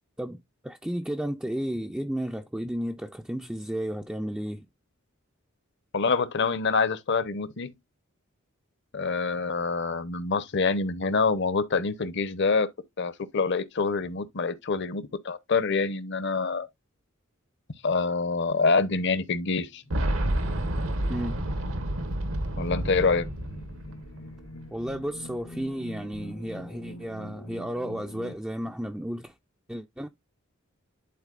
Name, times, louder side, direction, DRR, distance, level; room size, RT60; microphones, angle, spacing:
voice 1, 0.2-4.7 21.1-21.4 24.7-29.3 29.7-30.1, equal, 5° right, 0.4 m, -33 dB
voice 2, 5.9-7.7 8.9-12.7 13.0-16.7 17.8-19.8 22.6-23.3, left 4 dB, 55° left, 0.8 m, -26 dB
sound 1, 19.7-28.3, left 1 dB, 80° left, 1.2 m, -46 dB
Boom, 19.9-24.7 24.9-25.0 26.1-26.2, right 1 dB, 70° right, 1.1 m, -30 dB
11.5 x 4.0 x 2.4 m
head